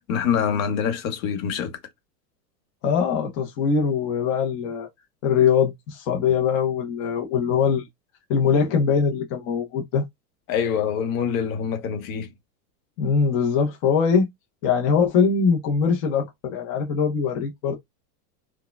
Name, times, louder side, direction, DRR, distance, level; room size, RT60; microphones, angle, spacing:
voice 1, 0.1-1.8 10.5-12.3, left 7 dB, 55° left, 1.1 m, -25 dB
voice 2, 2.8-4.9 5.2-7.9 8.3-10.0 13.0-14.2 14.6-17.7, left 6 dB, 35° left, 0.7 m, -22 dB
4.7 x 2.2 x 2.2 m
supercardioid pair, 155°, 48 cm